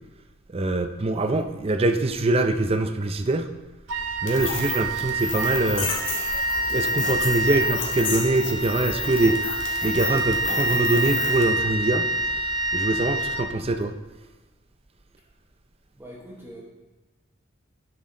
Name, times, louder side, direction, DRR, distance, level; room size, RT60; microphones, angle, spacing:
voice 1, 0.5-3.5 4.2-5.9 6.7-9.4 9.8-12.1 12.7-13.9, right 2 dB, 30° right, 8 dB, 0.5 m, -23 dB
Wind instrument woodwind instrument, 3.9-14.0, right 1 dB, 75° right, 0.7 m, -27 dB
sound 1, 4.3-11.5, left 5 dB, 75° left, 1.9 m, -32 dB
voice 2, 15.9-16.6, right 1 dB, 10° right, -5 dB, 1.1 m, -42 dB
9.9 x 6.3 x 3.7 m, 1.2 s
head